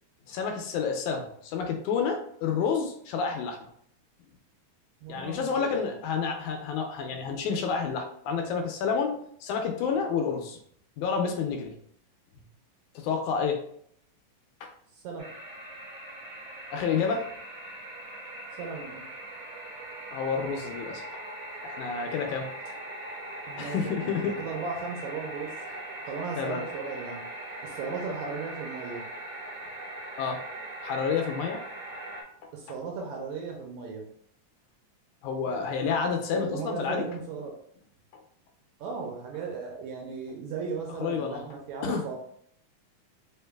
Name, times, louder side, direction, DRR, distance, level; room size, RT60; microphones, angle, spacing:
voice 1, 0.3-3.7 5.1-9.1 9.4-10.6 11.0-11.7 13.0-13.6 14.6-14.7 16.7-17.3 20.1-21.0 21.6-22.5 23.6-24.3 26.4-26.6 30.2-30.4 30.8-31.6 35.2-37.0 40.9-41.5 41.8-42.1, left 6 dB, 80° left, 4 dB, 1.9 m, -29 dB
voice 2, 5.0-5.9 14.9-15.3 18.6-19.1 23.5-25.5 26.1-27.2 27.6-29.0 32.5-34.1 36.3-37.6 38.8-42.2, right 5 dB, 80° right, 0 dB, 1.7 m, -36 dB
sound 1, 15.2-32.2, right 1 dB, 65° right, 1.8 m, -40 dB
4.5 x 3.5 x 2.2 m, 0.66 s
omnidirectional pair, 3.7 m